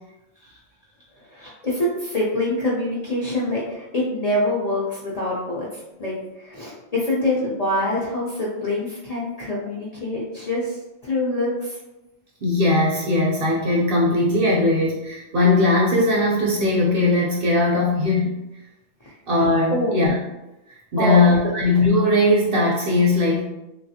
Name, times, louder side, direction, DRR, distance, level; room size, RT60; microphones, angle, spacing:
voice 1, 1.2-11.8 19.0-19.2 19.7-20.0 21.0-21.3, left 1 dB, 45° left, -7 dB, 0.5 m, -25 dB
voice 2, 12.4-18.3 19.3-20.1 20.7-23.4, left 2 dB, 55° right, -3 dB, 0.7 m, -19 dB
3.1 x 2.3 x 2.7 m, 0.96 s
omnidirectional pair, 1.3 m